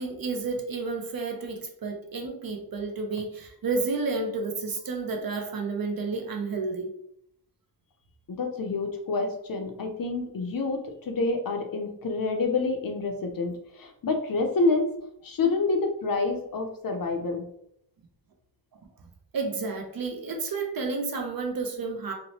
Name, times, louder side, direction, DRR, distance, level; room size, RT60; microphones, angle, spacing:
voice 1, 0.0-6.9 19.3-22.1, right 4 dB, 55° right, 3 dB, 0.6 m, -31 dB
voice 2, 8.3-14.9 15.2-17.5, left 3 dB, 55° left, 4 dB, 0.5 m, -28 dB
2.8 x 2.1 x 2.7 m, 0.73 s
wide cardioid pair, 110°, 43 cm